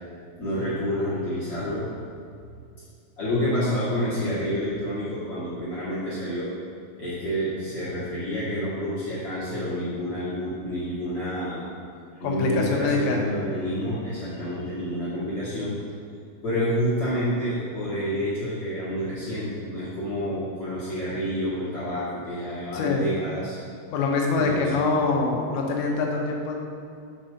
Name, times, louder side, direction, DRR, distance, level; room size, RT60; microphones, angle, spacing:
voice 1, 0.4-1.9 3.2-6.5 7.0-11.7 12.1-15.8 16.4-23.6 24.3-24.7, equal, 45° left, -11 dB, 2.0 m, -28 dB
voice 2, 12.2-13.2 22.7-23.1 23.9-26.6, left 4 dB, 75° left, -1 dB, 3.1 m, -24 dB
9.1 x 5.4 x 5.3 m, 2.4 s
omnidirectional pair, 5.6 m